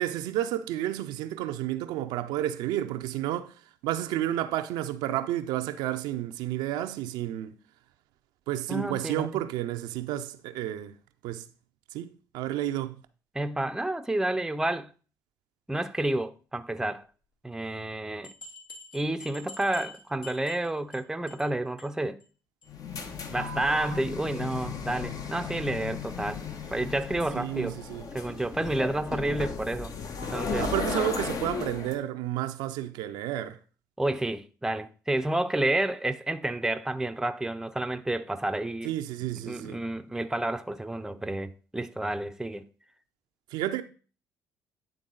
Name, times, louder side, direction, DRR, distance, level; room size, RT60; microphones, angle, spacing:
voice 1, 0.0-3.5 3.8-7.5 8.5-10.9 11.2-11.4 11.9-12.9 27.3-28.0 30.6-33.6 38.8-39.8 43.5-43.8, right 13 dB, 75° right, 0.5 m, -31 dB
voice 2, 8.7-9.4 13.3-14.9 15.7-17.1 17.4-18.3 18.9-22.2 23.3-26.4 26.7-27.8 28.1-29.9 30.3-30.7 31.0-31.1 34.0-39.0 39.5-42.6, right 1 dB, 5° right, 0.6 m, -30 dB
sound 1, 18.2-21.0 21.3-21.5 21.8-21.9 22.2-22.3 22.6-22.7, left 3 dB, 75° left, 2.2 m, -46 dB
sound 2, 22.7-32.0, left 5 dB, 50° left, 1.0 m, -35 dB
10.0 x 3.6 x 3.9 m
hypercardioid pair, 60°, 8 cm